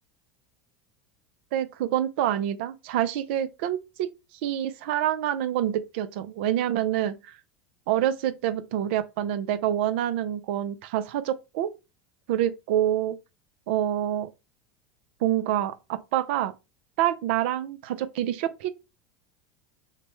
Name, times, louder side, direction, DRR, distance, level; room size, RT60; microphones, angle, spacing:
voice 1, 1.5-4.1 4.4-7.3 7.9-11.7 12.3-13.2 13.7-14.3 15.2-16.5 17.0-18.7, right 11 dB, 70° right, 0.6 m, -27 dB
6.5 x 2.2 x 3.1 m
supercardioid pair, 105°, 6 cm